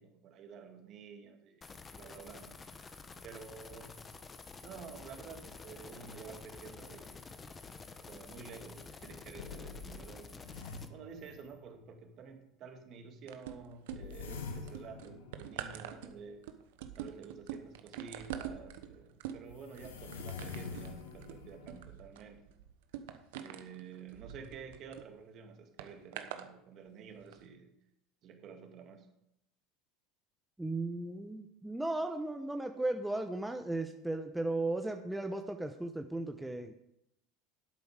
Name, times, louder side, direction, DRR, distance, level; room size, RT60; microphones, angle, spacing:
voice 1, 0.0-2.6 3.2-4.0 4.6-7.4 7.9-10.6 10.9-16.4 16.9-22.4 23.3-27.7 28.2-29.1, right 6 dB, 50° right, 4 dB, 2.1 m, -50 dB
sound 1, 1.6-10.9, left 4 dB, 25° left, 1.0 m, -50 dB
sound 2, 8.1-8.2 8.7-8.8 9.4-11.9 13.9-16.3 18.5-18.6 19.6-21.8, left 5 dB, 85° left, 1.5 m, -46 dB
sound 3, 13.3-14.3 14.7-25.0 25.8-26.5 27.2-27.3, right 10 dB, 75° right, 1.0 m, -45 dB
voice 2, 30.6-36.8, right 2 dB, 5° right, 5 dB, 1.0 m, -36 dB
11.0 x 8.4 x 5.0 m, 0.80 s
hypercardioid pair, 85°, 0 cm